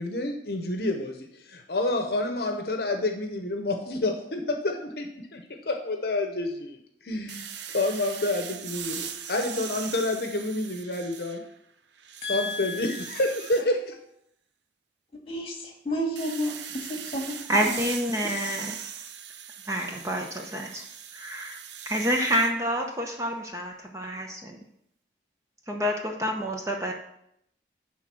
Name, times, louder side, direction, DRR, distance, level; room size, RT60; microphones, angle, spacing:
voice 1, 0.0-7.5 7.7-11.4 12.3-14.0, left 2 dB, 60° left, 4 dB, 0.8 m, -29 dB
sound 1, 7.3-11.6 12.0-13.6 16.2-22.5, right 8 dB, 80° right, 0.6 m, -40 dB
voice 2, 12.2-13.0 15.3-17.8, left 1 dB, 30° left, 1 dB, 1.9 m, -32 dB
voice 3, 17.5-18.8 19.7-20.8 21.1-21.6 21.9-24.6 25.7-26.9, equal, 15° right, 2 dB, 0.8 m, -28 dB
10.5 x 3.7 x 6.1 m, 0.74 s
head